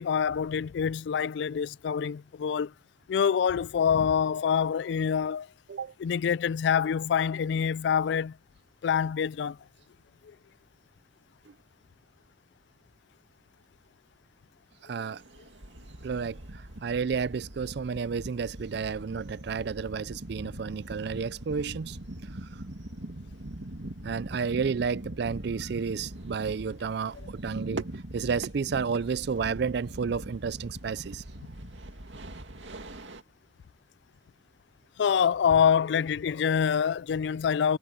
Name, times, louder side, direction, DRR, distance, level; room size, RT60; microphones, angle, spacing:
voice 1, 0.0-2.7 3.1-5.5 6.0-8.3 8.8-9.6 35.0-37.8, left 7 dB, 65° left, 0.3 m, -26 dB
voice 2, 14.8-15.2 16.0-22.0 22.4-22.5 24.0-31.2, right 6 dB, 60° right, 0.4 m, -31 dB
sound 1, 15.0-33.2, right 1 dB, 80° right, 2.3 m, -41 dB
head